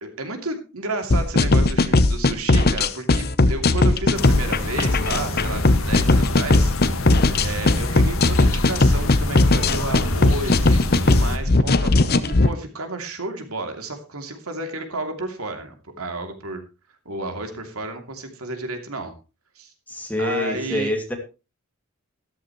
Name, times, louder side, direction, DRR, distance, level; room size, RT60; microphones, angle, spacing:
voice 1, 0.0-7.1 7.4-16.6 17.0-19.1 19.5-19.7 20.2-20.9, right 2 dB, 80° right, 6 dB, 2.8 m, -32 dB
sound 1, 1.1-12.5, left 2 dB, 45° left, 0.8 m, -18 dB
sound 2, 4.1-11.4, left 2 dB, 70° left, 1.8 m, -27 dB
voice 2, 19.9-21.2, left 2 dB, 5° left, 3 dB, 2.4 m, -26 dB
13.5 x 13.5 x 3.1 m, 0.30 s
head